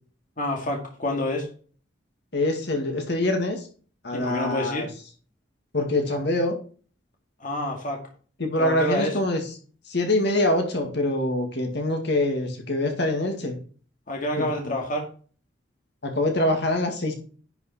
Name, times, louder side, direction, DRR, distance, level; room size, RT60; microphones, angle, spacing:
voice 1, 0.4-1.5 4.1-4.9 7.4-8.0 8.6-9.1 14.1-15.1, left 1 dB, 40° left, 1 dB, 2.0 m, -28 dB
voice 2, 2.3-3.7 4.0-4.9 5.7-6.5 8.4-9.5 9.9-13.6 14.4-14.8 16.0-17.1, left 1 dB, 60° left, 3 dB, 2.1 m, -25 dB
10.5 x 5.5 x 4.3 m, 0.40 s
head